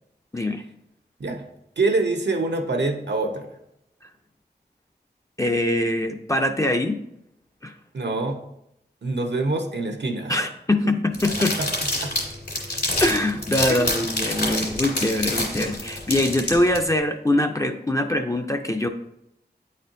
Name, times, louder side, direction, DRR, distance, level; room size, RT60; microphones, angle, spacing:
voice 1, 1.8-3.5 7.9-8.4 9.0-10.5 11.6-12.1 13.7-13.8 14.4-14.6, right 3 dB, 85° right, 2 dB, 0.8 m, -26 dB
voice 2, 5.4-7.0 7.6-7.7 10.3-11.6 13.0-18.9, left 1 dB, 20° left, 4 dB, 0.4 m, -23 dB
sound 1, 11.1-16.8, left 1 dB, 70° left, 2.2 m, -27 dB
8.9 x 4.3 x 2.6 m, 0.80 s
wide cardioid pair, 70°, 18 cm